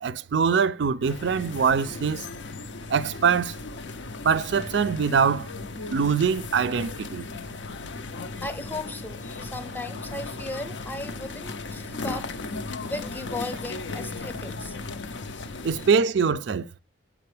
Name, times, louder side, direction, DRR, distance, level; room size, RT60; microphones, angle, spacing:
voice 1, 0.0-2.2 2.9-3.5 4.2-5.5 5.9-7.3 15.6-16.6, right 6 dB, 65° right, 0.4 m, -23 dB
sound 1, 1.0-15.9, left 3 dB, 65° left, 0.6 m, -36 dB
voice 2, 8.4-12.3 12.9-14.8, left 2 dB, 10° left, 0.6 m, -36 dB
6.8 x 5.0 x 3.2 m
head